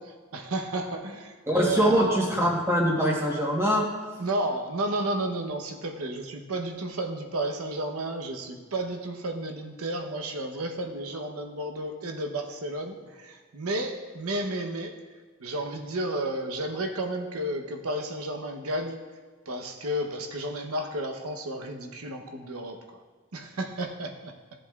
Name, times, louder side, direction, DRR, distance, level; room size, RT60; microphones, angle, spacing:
voice 1, 0.0-2.2 4.2-14.9 15.4-19.0 19.5-22.8 23.3-24.3, right 1 dB, 85° right, 4 dB, 0.9 m, -32 dB
voice 2, 1.5-3.9, equal, 10° right, -1 dB, 1.1 m, -23 dB
14.5 x 7.5 x 2.4 m, 1.5 s
head